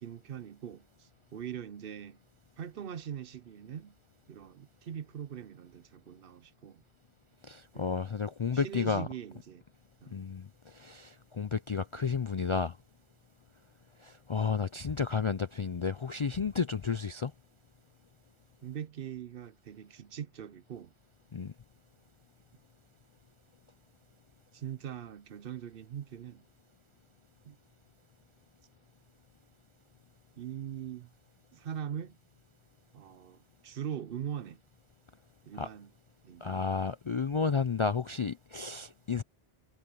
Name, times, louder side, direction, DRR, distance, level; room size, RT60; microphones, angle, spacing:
voice 1, 0.0-2.2 2.6-4.0 4.3-6.8 7.7-8.0 8.5-9.6 10.0-10.2 18.6-20.9 24.5-26.4 27.4-27.6 30.4-31.1 31.5-32.2 32.9-34.6 35.5-35.9 36.2-36.6, right 9 dB, 60° right, 0.8 m, -42 dB
voice 2, 7.4-9.1 10.1-12.8 14.0-17.3 21.3-21.5 35.6-35.7 36.4-39.2, left 5 dB, 45° left, 0.4 m, -32 dB
omnidirectional pair, 1.1 m